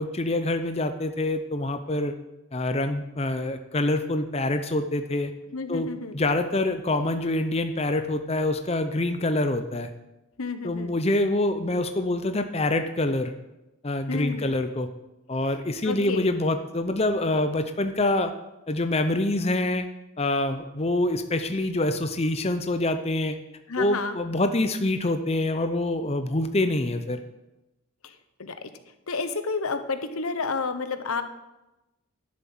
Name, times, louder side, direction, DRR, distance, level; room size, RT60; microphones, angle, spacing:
voice 1, 0.0-2.1 2.5-5.3 5.7-5.9 6.1-9.9 10.6-13.3 13.8-14.9 15.3-18.3 18.7-19.9 20.2-23.4 23.8-27.2, left 2 dB, 30° left, 8 dB, 0.6 m, -26 dB
voice 2, 5.5-6.2 10.4-11.0 14.1-14.5 15.8-16.3 23.7-24.2 28.4-28.5 29.1-31.2, left 4 dB, 85° left, 10 dB, 1.1 m, -30 dB
11.0 x 7.6 x 7.7 m, 0.97 s
head